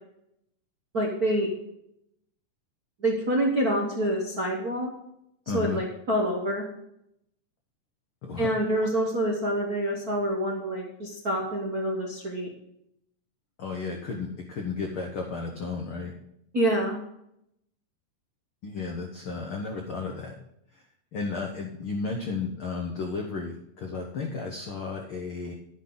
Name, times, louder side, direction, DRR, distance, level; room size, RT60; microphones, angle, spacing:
voice 1, 0.9-1.5 3.0-4.9 5.5-6.6 8.4-12.5 16.5-17.0, right 1 dB, 55° right, -2 dB, 1.0 m, -27 dB
voice 2, 5.5-5.8 8.2-8.5 8.8-8.9 13.6-16.1 18.6-20.3 20.7-20.8 21.1-25.5, left 4 dB, 75° left, 1 dB, 1.2 m, -33 dB
10.5 x 9.9 x 3.9 m, 0.77 s
omnidirectional pair, 3.9 m